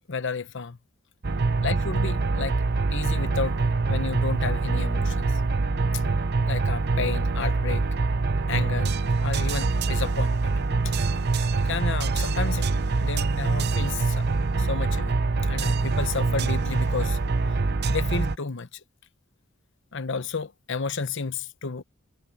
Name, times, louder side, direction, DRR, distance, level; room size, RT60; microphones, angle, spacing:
voice 1, 0.1-0.8 1.6-2.6 2.9-5.4 5.9-6.0 6.4-7.8 8.5-10.5 10.8-10.9 11.6-12.7 13.0-14.3 14.6-15.2 15.4-17.2 17.9-18.8 19.9-21.8, left 5 dB, 60° left, 0.9 m, -32 dB
sound 1, 1.2-18.4, right 3 dB, 50° right, 0.7 m, -24 dB
head